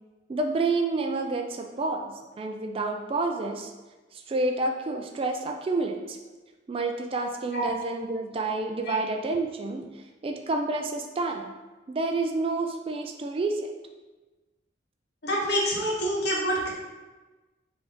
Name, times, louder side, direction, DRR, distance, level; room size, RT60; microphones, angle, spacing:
voice 1, 0.3-3.7 4.1-6.2 6.7-9.8 10.2-11.5 11.9-13.7, right 3 dB, 30° right, 4 dB, 0.3 m, -29 dB
voice 2, 15.2-16.7, equal, 60° left, -4 dB, 1.1 m, -26 dB
3.8 x 3.4 x 3.6 m, 1.2 s
head